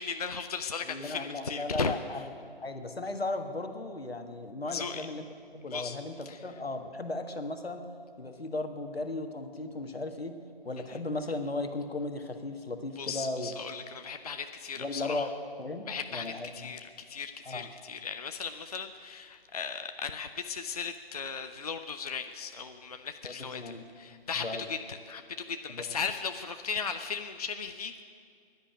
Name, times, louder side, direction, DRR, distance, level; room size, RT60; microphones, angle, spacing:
voice 1, 0.0-1.9 4.7-5.0 5.7-6.0 6.3-6.4 13.0-15.3 15.9-28.0, left 5 dB, 40° left, 8 dB, 0.4 m, -37 dB
voice 2, 0.8-2.3 2.6-5.3 5.5-7.8 8.2-10.3 10.6-13.5 14.8-15.3 15.6-16.7 17.4-17.7 23.2-23.8 24.3-24.6 25.7-25.9, left 2 dB, 75° left, 7 dB, 1.5 m, -36 dB
10.5 x 10.0 x 9.9 m, 2.4 s
figure-of-eight pair, 145°, 31 cm